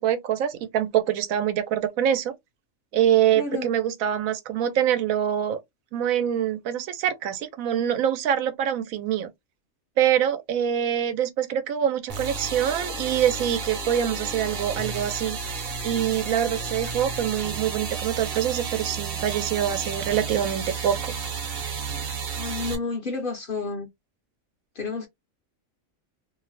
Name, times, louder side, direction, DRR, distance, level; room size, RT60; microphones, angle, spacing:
voice 1, 0.0-2.3 2.9-5.6 5.9-9.3 10.0-15.4 15.8-21.1, right 10 dB, 90° right, 1.0 m, -25 dB
voice 2, 3.4-3.7 22.4-23.9 24.8-25.1, left 4 dB, 50° left, 0.7 m, -30 dB
sound 1, 12.1-22.8, right 5 dB, 55° right, 0.8 m, -32 dB
2.7 x 2.0 x 2.8 m
omnidirectional pair, 1.4 m